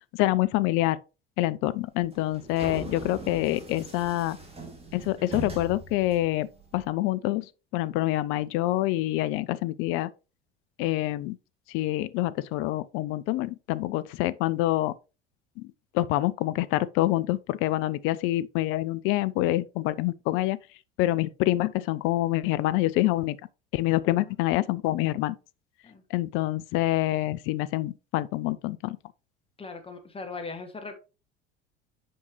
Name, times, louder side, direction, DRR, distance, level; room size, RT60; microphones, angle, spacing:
voice 1, 0.1-1.0 1.4-4.4 4.9-6.5 6.7-7.5 7.7-10.1 10.8-11.4 11.7-14.9 15.6-15.7 15.9-20.6 21.0-23.4 23.7-25.3 26.1-29.0, left 16 dB, 45° left, 0.5 m, -26 dB
sound 1, 1.8-6.9, right 1 dB, 20° right, 2.3 m, -41 dB
voice 2, 29.6-31.0, left 4 dB, 20° left, 1.2 m, -39 dB
7.6 x 5.3 x 3.0 m
figure-of-eight pair, 65°, 30 cm